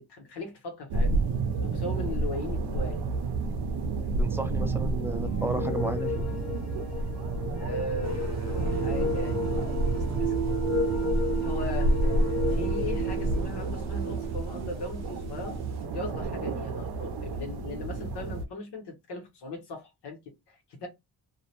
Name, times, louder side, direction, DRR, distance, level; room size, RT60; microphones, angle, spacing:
voice 1, 0.0-3.1 7.6-10.3 11.4-11.9 12.5-15.6 15.9-20.2 20.5-20.9, left 2 dB, 85° left, 1.1 m, -38 dB
sound 1, 0.9-18.4, right 2 dB, 80° right, 0.6 m, -30 dB
voice 2, 4.2-6.1, right 1 dB, 5° right, 0.5 m, -33 dB
sound 2, 5.3-13.5, left 7 dB, 40° left, 0.7 m, -36 dB
sound 3, 8.0-15.8, right 6 dB, 45° right, 0.7 m, -34 dB
2.5 x 2.1 x 2.8 m
cardioid pair, 105°, 39 cm